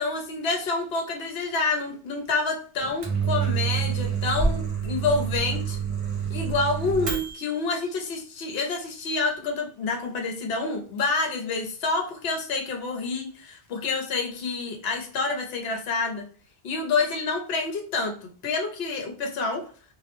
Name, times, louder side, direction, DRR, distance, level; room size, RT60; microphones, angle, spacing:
voice 1, 0.0-5.8 6.3-16.2 16.6-19.6, left 3 dB, 70° left, 2 dB, 0.9 m, -28 dB
Microwave oven, 2.8-7.6, right 6 dB, 40° right, 0.5 m, -27 dB
2.3 x 2.0 x 3.0 m, 0.40 s
omnidirectional pair, 1.1 m